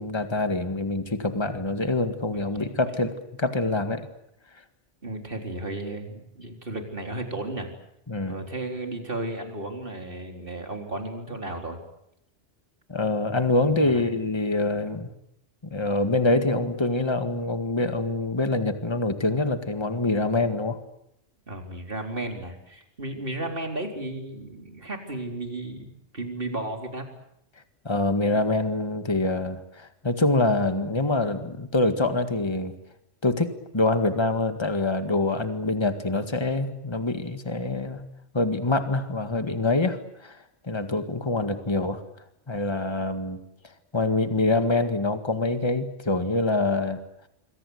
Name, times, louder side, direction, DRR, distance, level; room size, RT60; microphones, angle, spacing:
voice 1, 0.0-3.1 3.4-4.1 8.1-8.4 12.9-15.1 15.7-20.8 27.9-32.7 33.2-38.0 38.3-40.0 40.2-40.4 40.6-42.0 42.5-43.4 43.9-47.0, left 2 dB, 25° left, 8 dB, 1.9 m, -25 dB
voice 2, 2.3-2.7 5.0-7.7 8.3-11.8 13.7-14.0 21.5-25.9 26.1-27.1, right 2 dB, 50° right, 4 dB, 4.2 m, -34 dB
27.0 x 23.0 x 8.1 m, 0.78 s
omnidirectional pair, 1.2 m